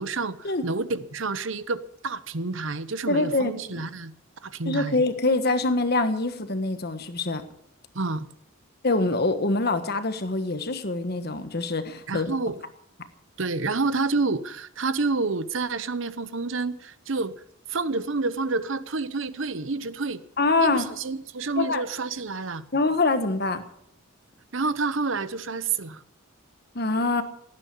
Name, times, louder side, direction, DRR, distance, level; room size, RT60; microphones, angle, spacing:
voice 1, 0.0-4.1 4.4-5.0 7.9-8.3 12.1-12.6 13.4-17.4 17.7-20.2 20.6-22.6 24.5-26.0, right 3 dB, 65° right, 0.9 m, -28 dB
voice 2, 3.1-3.9 4.6-7.4 8.8-12.3 20.4-20.9 21.6-21.8 22.7-23.6 26.7-27.2, left 2 dB, 50° left, 1.4 m, -25 dB
17.0 x 9.7 x 8.3 m
head